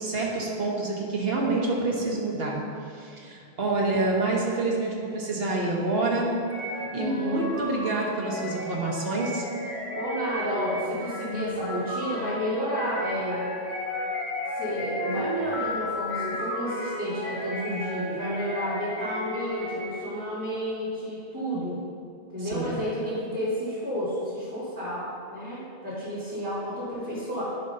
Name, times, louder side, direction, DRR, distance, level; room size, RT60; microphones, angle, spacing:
voice 1, 0.0-2.6 2.9-6.3 6.9-9.5 22.4-22.7, right 2 dB, 70° right, -2 dB, 1.4 m, -27 dB
sound 1, 6.5-20.1, left 1 dB, 45° left, 1.8 m, -34 dB
voice 2, 6.9-7.4 10.0-13.4 14.4-21.8 22.3-27.4, equal, 20° right, -13 dB, 2.0 m, -31 dB
10.0 x 3.8 x 5.5 m, 2.4 s
omnidirectional pair, 1.1 m